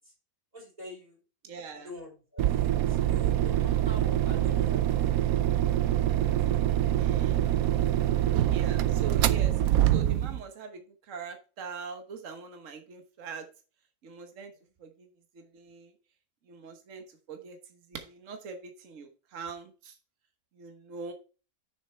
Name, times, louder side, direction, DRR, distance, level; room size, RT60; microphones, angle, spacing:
voice 1, 0.5-1.2 1.7-5.2 6.2-6.6, left 1 dB, 25° right, -4 dB, 4.3 m, -45 dB
voice 2, 1.4-1.9 6.9-7.4 8.5-9.5 9.9-10.8 11.1-13.5 14.0-14.5 14.8-15.1 15.3-15.9 16.5-17.6 17.9-19.9 20.6-21.1, right 5 dB, 65° right, 5 dB, 1.5 m, -42 dB
sound 1, 2.4-10.4, right 12 dB, 85° right, 1.1 m, -25 dB
6.6 x 6.5 x 4.4 m, 0.35 s
omnidirectional pair, 1.4 m